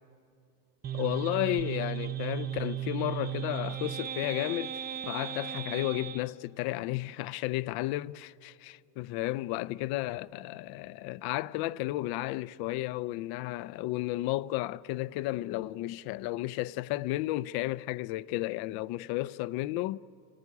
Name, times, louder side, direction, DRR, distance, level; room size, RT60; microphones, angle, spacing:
sound 1, 0.8-6.2, right 11 dB, 20° right, 0.6 m, -36 dB
voice 1, 0.9-4.8 5.1-20.0, left 17 dB, 55° left, 0.6 m, -33 dB
27.0 x 15.5 x 9.7 m
supercardioid pair, 130°, 46 cm